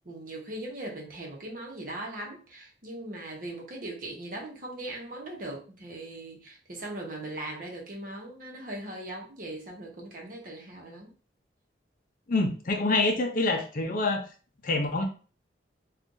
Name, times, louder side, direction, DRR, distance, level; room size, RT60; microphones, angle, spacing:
voice 1, 0.0-11.1, right 1 dB, 50° right, -1 dB, 0.9 m, -39 dB
voice 2, 12.3-14.2 14.6-15.1, left 2 dB, 45° left, 4 dB, 0.5 m, -26 dB
2.5 x 2.4 x 3.7 m, 0.37 s
head